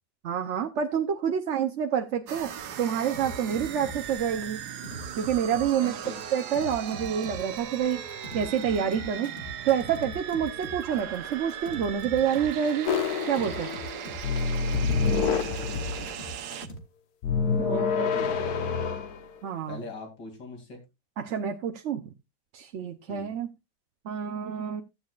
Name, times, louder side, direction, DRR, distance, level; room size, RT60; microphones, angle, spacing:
voice 1, 0.2-4.6 5.2-6.0 6.3-8.0 8.3-9.3 9.6-12.9 13.3-13.7 17.6-18.3 19.4-19.8 21.2-22.1 22.5-23.5 24.0-24.8, right 8 dB, 55° right, 4 dB, 0.9 m, -28 dB
sound 1, 2.3-16.7, right 9 dB, 70° right, 1.4 m, -38 dB
sound 2, 3.1-16.8, left 1 dB, 40° left, 1.7 m, -42 dB
voice 2, 5.8-6.2 15.4-16.1 17.7-18.7 19.7-20.8 23.1-23.3, left 3 dB, 85° left, 4 dB, 3.4 m, -41 dB
sound 3, 12.9-14.0 14.2-16.2 17.2-19.2, left 5 dB, 65° left, 1.4 m, -27 dB
14.5 x 8.4 x 2.4 m, 0.23 s
omnidirectional pair, 1.8 m